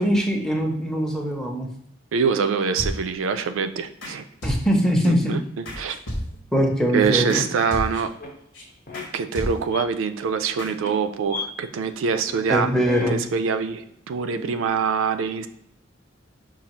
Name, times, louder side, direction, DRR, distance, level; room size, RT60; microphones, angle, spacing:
voice 1, 0.0-1.7 4.4-5.3 6.5-7.4 12.5-13.2, equal, 5° left, 1 dB, 0.6 m, -22 dB
voice 2, 2.1-4.2 5.1-6.0 6.9-8.1 9.1-12.7 13.1-15.5, right 6 dB, 85° right, 11 dB, 0.3 m, -24 dB
sound 1, 2.8-3.3 4.0-4.2 4.4-5.1 5.7-6.6 7.3-7.4 7.7-8.2 8.5-8.6 8.9-9.1 9.3-9.9 10.6-10.7, equal, 70° left, 1.0 m, -32 dB
sound 2, 7.9-8.3 8.9-9.0 9.5-9.8 10.2-10.5 10.8-10.9 11.3-11.4 11.8-11.9 12.2-12.6 12.8-13.2 13.8-13.9 14.3-14.7, left 4 dB, 50° left, 0.9 m, -34 dB
5.3 x 2.3 x 2.9 m, 0.72 s
head